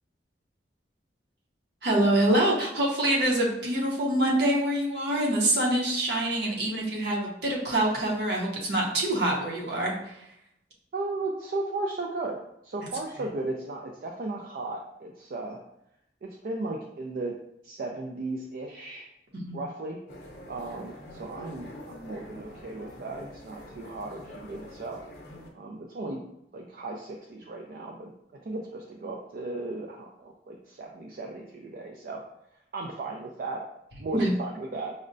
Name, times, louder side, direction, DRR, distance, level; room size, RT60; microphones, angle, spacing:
voice 1, 1.8-10.2 19.3-19.6 34.1-34.3, right 1 dB, 70° right, -2 dB, 0.7 m, -25 dB
voice 2, 10.9-12.4 12.6-15.6 16.2-17.3 17.6-19.1 19.5-20.0 20.5-25.0 25.5-26.2 26.5-32.2 32.5-33.6 34.0-34.9, right 2 dB, 55° right, 0 dB, 0.3 m, -35 dB
sound 1, 20.1-25.5, left 1 dB, 65° left, 0.7 m, -45 dB
5.2 x 2.1 x 2.5 m, 0.79 s
head